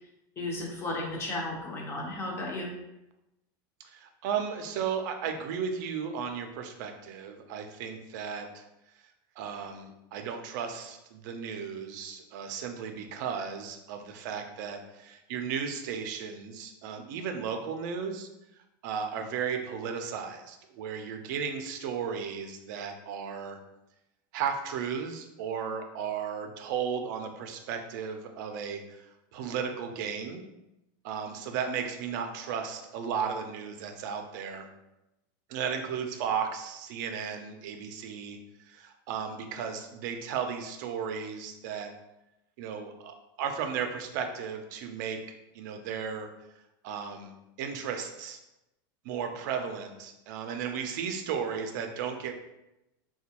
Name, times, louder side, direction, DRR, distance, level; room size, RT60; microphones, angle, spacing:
voice 1, 0.4-2.7, left 2 dB, 20° left, -1 dB, 0.7 m, -34 dB
voice 2, 3.9-8.6 9.4-18.3 18.8-23.6 24.3-29.1 29.3-30.4 31.0-34.7 35.5-38.4 38.7-41.9 42.6-46.3 46.8-47.3 47.6-48.4 49.0-52.4, right 7 dB, 60° right, 5 dB, 0.5 m, -35 dB
4.1 x 2.2 x 2.9 m, 0.92 s
supercardioid pair, 155°, 11 cm